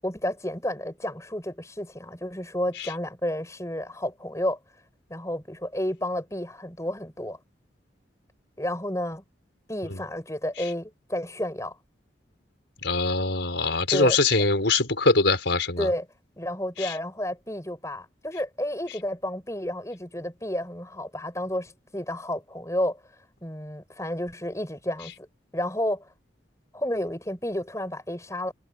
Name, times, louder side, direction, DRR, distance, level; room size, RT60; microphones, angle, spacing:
voice 1, 0.0-4.6 5.1-7.4 8.6-9.2 9.7-11.8 13.9-14.2 15.8-16.1 16.4-23.0 23.4-25.3 25.5-26.1 26.7-28.5, left 1 dB, 15° left, 7.0 m, -31 dB
voice 2, 12.8-15.9 16.8-17.0, left 3 dB, 75° left, 4.4 m, -23 dB
head